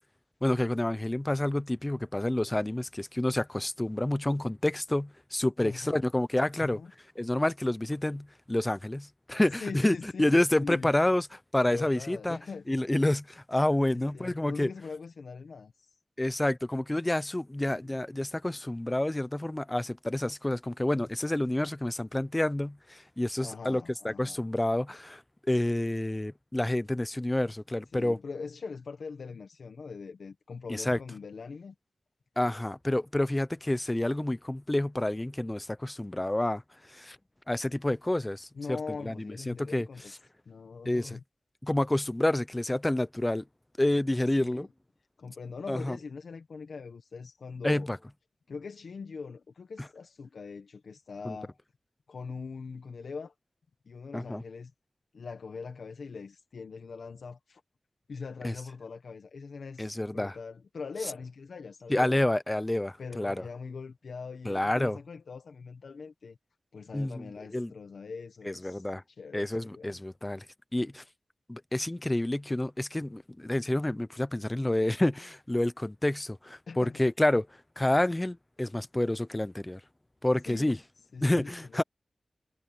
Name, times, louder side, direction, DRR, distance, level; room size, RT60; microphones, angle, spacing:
voice 1, 0.4-6.8 7.2-12.4 12.7-14.7 16.2-25.2 25.5-28.2 30.7-31.0 32.4-36.6 36.9-37.2 37.5-38.8 39.0-39.9 40.9-41.2 41.6-43.4 43.8-44.7 45.7-46.0 47.6-48.0 51.2-51.4 54.1-54.4 58.4-58.5 59.8-60.4 61.9-63.4 64.4-65.0 66.9-67.7 68.4-69.0 69.3-70.4 70.7-71.0 71.5-77.5 77.8-79.8 80.2-80.8 81.2-81.8, left 1 dB, 15° left, 0.8 m, -29 dB
voice 2, 5.6-6.0 6.6-6.9 9.6-10.9 11.7-12.7 13.9-15.9 17.8-18.0 23.4-24.4 27.9-31.7 38.5-40.1 40.5-41.2 44.2-44.7 45.2-47.9 48.5-51.6 52.1-53.3 53.8-54.7 55.1-57.6 58.1-62.2 63.0-66.4 66.7-69.9 76.7-77.0 80.5-80.7 81.1-81.8, left 5 dB, 90° left, 1.5 m, -42 dB
wide cardioid pair, 100°, 0 cm